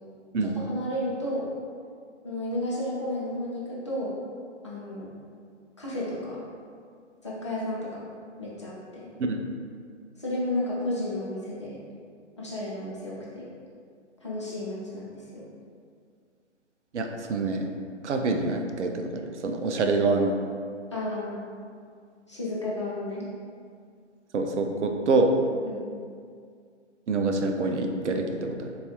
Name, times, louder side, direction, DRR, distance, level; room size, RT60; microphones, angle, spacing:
voice 1, 0.4-1.5 2.2-4.2 4.6-5.1 5.8-6.4 7.2-8.0 8.4-9.1 10.2-11.8 12.4-13.5 14.2-15.4 20.9-21.4 22.3-23.3 25.6-25.9, left 1 dB, 25° left, -7 dB, 0.4 m, -32 dB
voice 2, 16.9-17.7 18.0-20.3 24.3-25.3 27.1-28.7, right 3 dB, 75° right, 4 dB, 0.5 m, -26 dB
4.0 x 2.3 x 2.8 m, 2.2 s
figure-of-eight pair, 140°, 36 cm